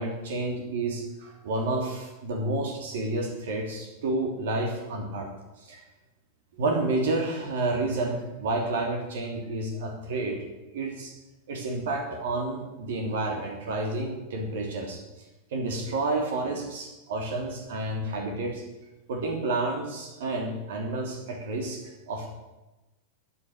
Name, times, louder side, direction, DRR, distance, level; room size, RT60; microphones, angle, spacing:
voice 1, 0.0-5.3 5.6-5.8 6.6-10.5 10.7-11.1 11.5-15.0 15.5-18.6 19.1-22.3, right 2 dB, 55° right, 2 dB, 3.0 m, -30 dB
14.5 x 10.0 x 6.6 m, 1.0 s
figure-of-eight pair, 90°, 0 cm